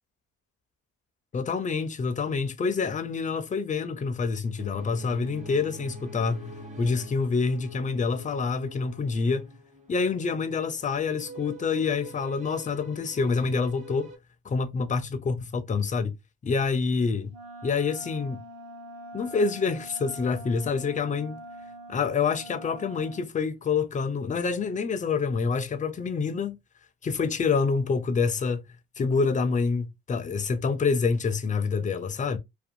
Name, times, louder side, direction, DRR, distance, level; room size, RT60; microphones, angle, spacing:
voice 1, 1.3-6.5 6.8-9.5 9.9-14.1 14.4-16.1 16.4-17.3 17.6-18.4 19.1-21.4 21.9-26.6 27.0-28.6 29.0-32.4, left 5 dB, 25° left, 0.4 m, -27 dB
sound 1, 4.6-14.2, equal, 25° right, 1.0 m, -45 dB
Wind instrument woodwind instrument, 17.3-23.3, right 1 dB, 55° right, 1.0 m, -44 dB
2.5 x 2.1 x 2.7 m
cardioid pair, 90°, 30 cm